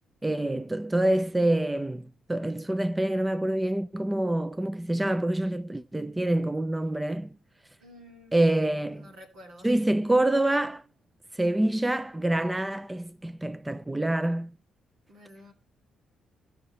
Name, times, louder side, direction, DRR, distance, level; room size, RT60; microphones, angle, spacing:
voice 1, 0.2-7.3 8.3-9.0 9.6-10.8 11.3-14.6, right 1 dB, 10° right, 0.4 m, -26 dB
voice 2, 7.8-9.8 15.1-15.5, equal, 75° right, 2.4 m, -50 dB
14.0 x 5.7 x 4.3 m
cardioid pair, 90°, 0 cm